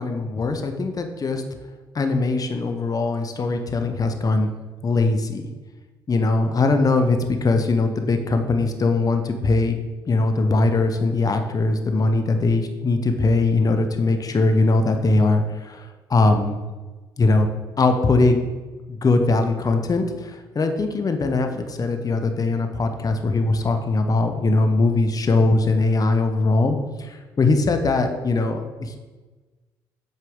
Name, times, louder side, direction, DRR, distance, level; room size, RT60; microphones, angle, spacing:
voice 1, 0.0-1.4 1.9-4.5 4.8-5.5 6.1-9.8 10.1-16.6 17.2-17.5 17.8-18.5 18.9-29.0, left 3 dB, 35° left, 6 dB, 0.9 m, -21 dB
7.9 x 4.7 x 3.7 m, 1.3 s
hypercardioid pair, 55°, 11 cm